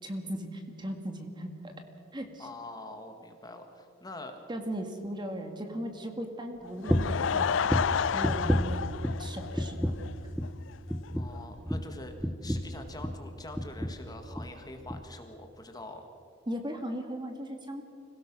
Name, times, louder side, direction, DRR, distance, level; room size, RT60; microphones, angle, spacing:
voice 1, 0.0-1.7 2.1-2.5 4.5-7.6 8.1-8.9 9.2-9.9 16.5-17.8, equal, 25° right, 5 dB, 1.9 m, -37 dB
voice 2, 2.4-4.4 11.1-16.1, left 2 dB, 20° left, 5 dB, 1.7 m, -45 dB
Laughter / Crowd, 6.6-10.1 10.4-10.5 11.1-11.2 11.3-11.4, left 7 dB, 85° left, 0.4 m, -31 dB
sound 1, 6.9-7.2 7.7-9.3 9.5-10.1 10.3-10.6 10.9-13.3 13.5-14.0 14.3-14.5 14.9-15.0, equal, 5° right, 1.0 m, -30 dB
25.5 x 17.0 x 6.1 m, 2.4 s
head